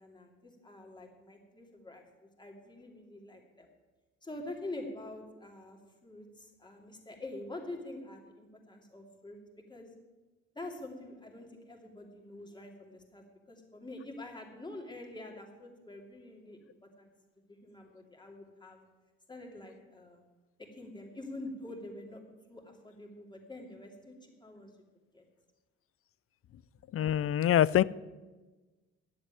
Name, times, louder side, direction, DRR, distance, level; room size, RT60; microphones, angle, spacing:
voice 1, 0.0-3.7 4.2-9.4 9.7-9.9 10.5-17.1 17.5-18.8 19.3-20.2 20.7-22.2 22.5-24.8 25.1-25.2, left 2 dB, 15° left, 0 dB, 2.8 m, -46 dB
voice 2, 26.9-27.8, left 11 dB, 50° left, 20 dB, 0.4 m, -24 dB
10.5 x 7.8 x 9.2 m, 1.2 s
cardioid pair, 90°, 30 cm